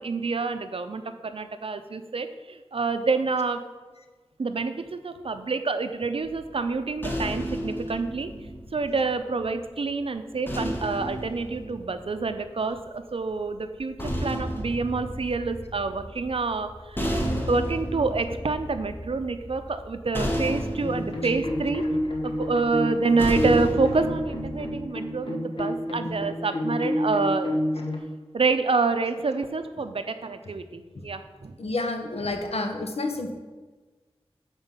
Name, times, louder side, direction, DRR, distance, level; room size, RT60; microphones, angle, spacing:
voice 1, 0.0-3.6 4.4-8.3 8.7-14.0 14.2-17.0 17.5-21.8 22.2-27.6 28.3-31.5, right 4 dB, 65° right, 9 dB, 0.5 m, -27 dB
sound 1, 6.2-9.5 10.5-12.7 13.7-24.8, equal, 20° left, 1.2 m, -33 dB
sound 2, 20.8-28.0, left 1 dB, 55° left, 1.3 m, -29 dB
voice 2, 31.6-33.3, left 2 dB, 75° left, 5 dB, 0.9 m, -29 dB
7.2 x 4.4 x 5.2 m, 1.3 s
wide cardioid pair, 60°, 11 cm